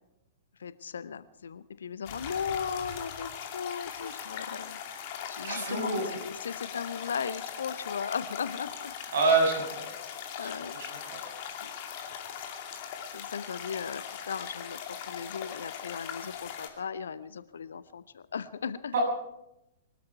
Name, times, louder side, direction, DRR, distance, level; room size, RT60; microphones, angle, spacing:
voice 1, 0.6-4.8 5.3-8.9 10.4-10.8 11.6-11.7 13.1-14.8 15.1-18.9, left 6 dB, 65° left, 16 dB, 0.8 m, -37 dB
sound 1, 2.1-16.7, left 8 dB, 40° left, 2.5 m, -40 dB
voice 2, 5.4-6.0 9.1-9.6 10.7-10.9 18.9-19.0, right 3 dB, 60° right, 1 dB, 6.9 m, -25 dB
23.5 x 13.0 x 4.7 m, 0.85 s
figure-of-eight pair, 105°, 0 cm